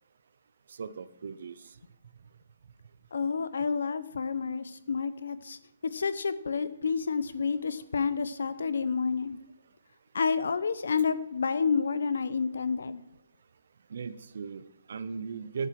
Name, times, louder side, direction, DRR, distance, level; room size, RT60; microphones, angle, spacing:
voice 1, 0.7-1.6 13.9-15.7, right 5 dB, 55° right, 15 dB, 0.7 m, -38 dB
voice 2, 3.1-9.4 10.1-13.0, left 5 dB, 70° left, 14 dB, 0.8 m, -29 dB
11.0 x 8.8 x 4.7 m, 0.80 s
hypercardioid pair, 175°, 0 cm